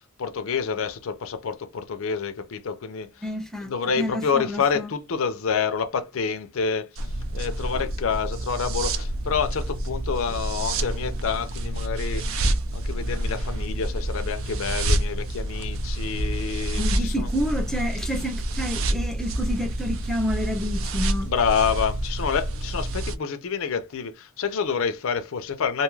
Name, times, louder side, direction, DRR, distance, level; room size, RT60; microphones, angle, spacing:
voice 1, 0.0-3.1 3.6-6.9 7.3-12.2 12.7-17.3 21.2-25.8, left 6 dB, 65° left, 0.4 m, -28 dB
voice 2, 3.2-4.9 16.7-21.3, equal, ahead, 0.4 m, -29 dB
sound 1, 6.9-23.1, right 1 dB, 65° right, 0.5 m, -28 dB
2.6 x 2.3 x 3.1 m
head